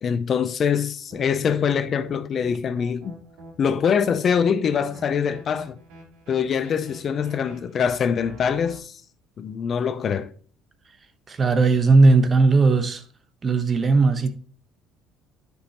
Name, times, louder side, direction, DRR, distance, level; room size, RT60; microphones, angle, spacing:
voice 1, 0.0-3.2 3.6-5.8 6.3-9.0 9.4-10.3, left 7 dB, 45° left, 0.6 m, -24 dB
sound 1, 1.1-8.8, right 2 dB, 85° right, 3.1 m, -46 dB
voice 2, 11.3-13.0 13.4-14.4, right 3 dB, 30° right, 1.1 m, -17 dB
10.0 x 5.3 x 3.0 m
supercardioid pair, 95°, 0 cm